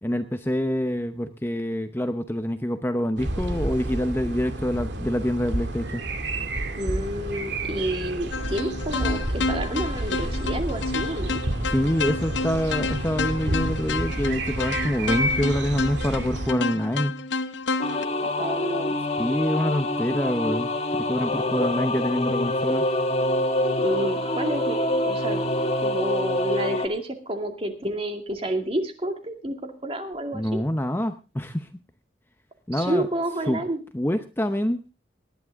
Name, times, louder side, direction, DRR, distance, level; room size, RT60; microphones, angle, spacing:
voice 1, 0.0-6.0 11.7-17.2 19.2-22.9 30.3-31.7 32.7-33.1 33.5-33.6 33.9-34.9, equal, 10° left, 8 dB, 0.7 m, -26 dB
sound 1, 3.2-16.5, right 1 dB, 70° right, 2.2 m, -30 dB
voice 2, 6.8-11.4 18.2-18.9 23.8-24.8 25.0-25.4 25.8-30.6 32.7-33.8, right 1 dB, 30° right, 5 dB, 2.3 m, -29 dB
sound 2, 8.3-18.1, left 4 dB, 80° left, 0.9 m, -30 dB
sound 3, 17.8-26.9, left 1 dB, 35° left, 1.9 m, -26 dB
19.0 x 11.5 x 3.5 m, 0.32 s
head